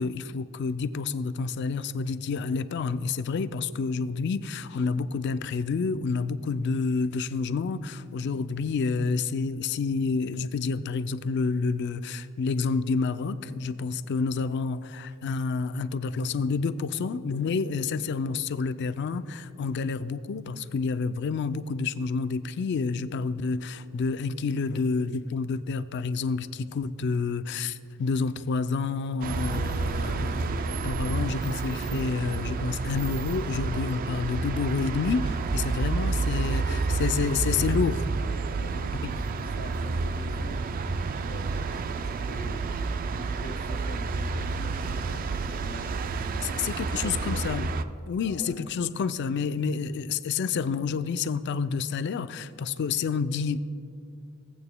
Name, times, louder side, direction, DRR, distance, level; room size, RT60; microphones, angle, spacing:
voice 1, 0.0-38.0 39.0-39.1 46.4-47.7 48.1-53.6, left 4 dB, 55° left, 0.3 m, -29 dB
Road Rome, 29.2-47.8, right 4 dB, 45° right, 0.3 m, -30 dB
voice 2, 35.9-38.1 38.5-40.7 41.3-41.6 42.0-42.6 42.9-46.0 46.9-47.4 48.2-48.6, left 1 dB, 85° left, 1.4 m, -43 dB
17.0 x 8.7 x 2.2 m
head